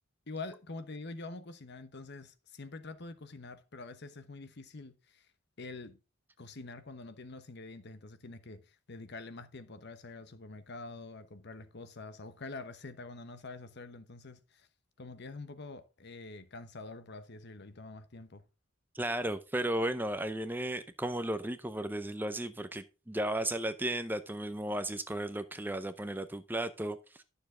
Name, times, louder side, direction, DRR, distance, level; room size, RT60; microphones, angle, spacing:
voice 1, 0.3-5.3 5.6-6.0 6.4-14.7 15.0-18.4, left 3 dB, 50° left, 1.0 m, -46 dB
voice 2, 18.9-27.2, right 1 dB, 10° right, 0.6 m, -34 dB
12.0 x 7.0 x 3.7 m
head